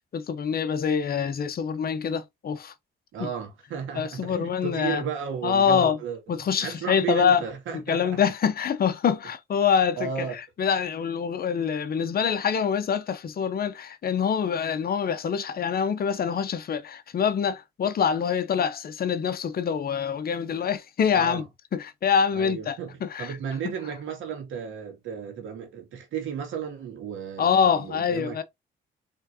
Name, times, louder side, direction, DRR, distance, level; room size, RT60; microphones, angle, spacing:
voice 1, 0.1-2.7 3.2-3.3 3.9-5.0 5.4-6.0 6.3-7.4 7.7-10.3 10.6-21.4 21.7-23.4 27.4-28.4, left 7 dB, 50° left, 0.8 m, -25 dB
voice 2, 3.1-6.2 6.6-8.2 10.0-10.3 21.1-21.4 22.3-28.4, right 7 dB, 80° right, 2.3 m, -34 dB
4.4 x 3.7 x 2.8 m
cardioid pair, 90°, 20 cm